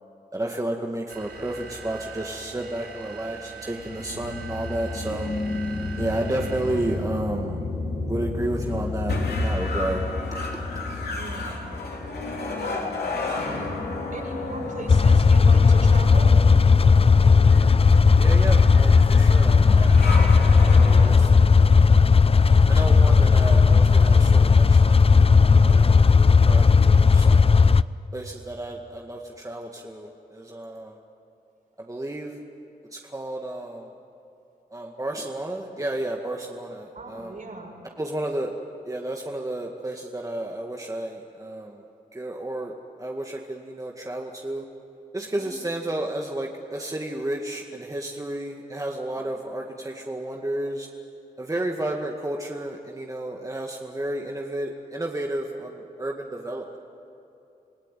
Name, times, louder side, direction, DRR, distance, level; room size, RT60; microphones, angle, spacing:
voice 1, 0.3-5.3 6.0-7.6 8.1-10.1 18.2-22.2 22.7-25.1 25.3-27.5 28.1-31.0 31.8-32.4 32.9-33.9 34.7-37.4 38.0-38.5 38.8-41.8 42.1-44.6 45.1-50.9 51.4-56.8, right 1 dB, 20° right, 1 dB, 2.0 m, -32 dB
sound 1, 1.1-7.3, right 5 dB, 80° right, 3.7 m, -42 dB
sound 2, 3.8-21.1, left 2 dB, 80° left, 3.5 m, -31 dB
voice 2, 11.1-12.0 12.6-13.3 14.1-16.4 36.9-37.7 45.2-45.5 49.2-49.3, right 2 dB, 60° right, 0 dB, 6.2 m, -38 dB
sound 3, 14.9-27.8, left 5 dB, 35° left, 0.6 m, -15 dB
27.0 x 17.0 x 9.2 m, 2.8 s
cardioid pair, 50°, 16 cm